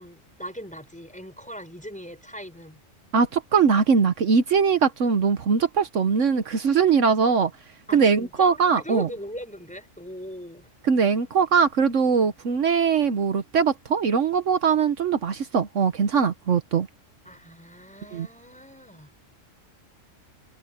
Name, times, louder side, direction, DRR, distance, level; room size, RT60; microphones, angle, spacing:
voice 1, 0.0-2.8 7.9-10.7 17.2-19.1, equal, 5° left, 4.9 m, -39 dB
voice 2, 3.1-7.5 7.9-9.1 10.8-16.9 18.1-18.3, right 6 dB, 70° right, 1.4 m, -21 dB
omnidirectional pair, 1.3 m